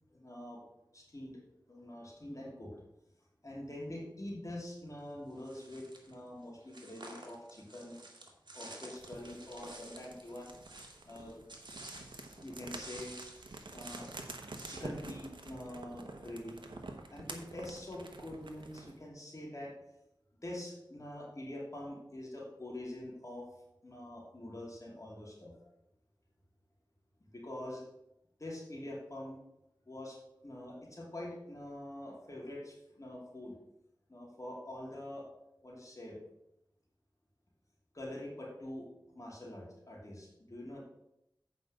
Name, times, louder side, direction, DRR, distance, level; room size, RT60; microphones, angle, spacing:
voice 1, 0.1-0.6 0.9-1.4 1.7-2.8 3.4-8.0 8.5-10.5 11.0-11.4 12.4-13.2 13.7-14.1 14.7-16.6 17.1-19.7 20.4-23.5 23.8-25.6 27.2-27.8 28.4-29.4 29.9-30.2 30.4-33.5 34.1-35.3 35.6-36.2 37.9-38.9 39.1-40.8, left 1 dB, 40° left, -3 dB, 2.7 m, -45 dB
sound 1, 5.4-6.1 6.7-12.5 12.7-14.8, right 2 dB, 70° right, 1.8 m, -51 dB
sound 2, 9.0-19.0, right 3 dB, 90° right, 1.1 m, -48 dB
8.3 x 5.2 x 6.4 m, 0.85 s
wide cardioid pair, 60°, 8 cm